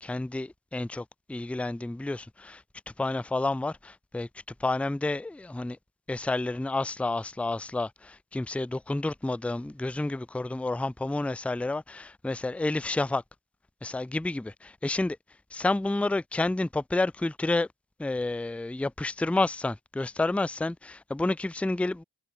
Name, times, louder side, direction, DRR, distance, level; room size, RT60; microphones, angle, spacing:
voice 1, 0.0-2.6 3.0-4.3 4.6-5.8 6.1-13.2 13.8-15.2 15.5-17.7 18.0-22.0, left 2 dB, 5° left, 0.6 m, -30 dB
cardioid pair, 55°, 45 cm